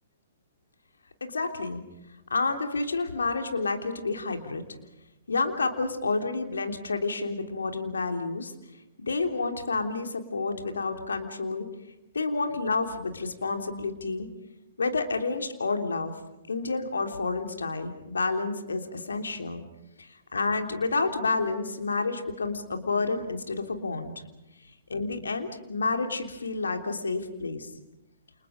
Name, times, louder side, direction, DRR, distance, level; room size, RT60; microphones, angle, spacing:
voice 1, 1.2-1.8 2.3-4.6 5.3-8.5 9.0-11.7 12.1-14.3 14.8-16.1 16.5-19.6 20.0-24.1 24.9-27.7, left 3 dB, 70° left, 5 dB, 3.4 m, -29 dB
29.5 x 28.5 x 5.1 m, 0.95 s
figure-of-eight pair, 120°, 0 cm